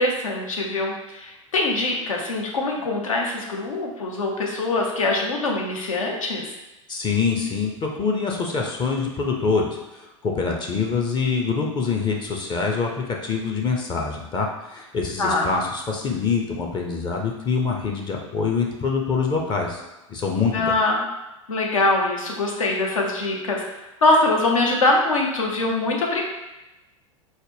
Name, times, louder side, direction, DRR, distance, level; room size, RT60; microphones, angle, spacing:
voice 1, 0.0-6.5 15.2-15.5 20.5-21.0 21.5-26.3, left 2 dB, 80° left, 0 dB, 0.8 m, -23 dB
voice 2, 6.9-9.7 9.9-19.8 20.1-20.8, left 5 dB, 25° left, 0 dB, 0.5 m, -25 dB
4.0 x 2.1 x 3.3 m, 1.0 s
figure-of-eight pair, 85°, 17 cm